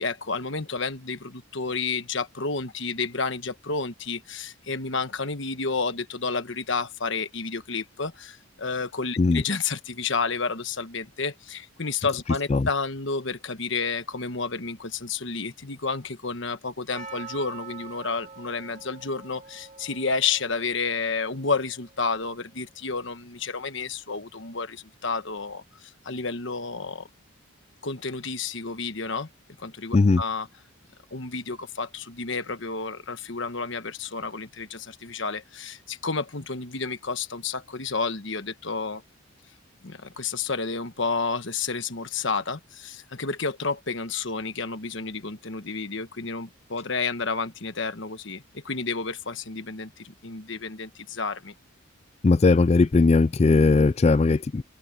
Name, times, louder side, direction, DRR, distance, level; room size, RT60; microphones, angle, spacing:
voice 1, 0.0-27.1 27.8-29.3 29.6-30.5 31.1-39.0 39.8-51.5, left 4 dB, 60° left, 1.3 m, -30 dB
Percussion, 16.9-21.9, right 5 dB, 35° right, 2.7 m, -45 dB
voice 2, 52.2-54.6, left 3 dB, 30° left, 0.3 m, -19 dB
head